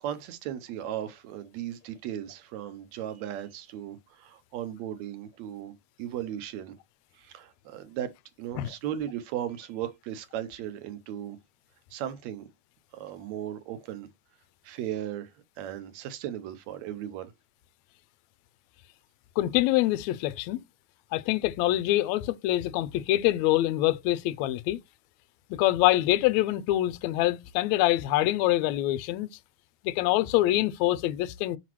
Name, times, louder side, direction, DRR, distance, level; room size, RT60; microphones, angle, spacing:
voice 1, 0.0-6.8 7.2-8.1 8.4-11.4 11.9-12.5 12.9-14.1 14.6-15.3 15.6-17.3, right 11 dB, 75° right, 2.0 m, -36 dB
voice 2, 19.4-20.6 21.1-24.8 25.5-29.3 29.8-31.6, left 15 dB, 80° left, 1.7 m, -25 dB
5.9 x 5.7 x 3.1 m
omnidirectional pair, 3.5 m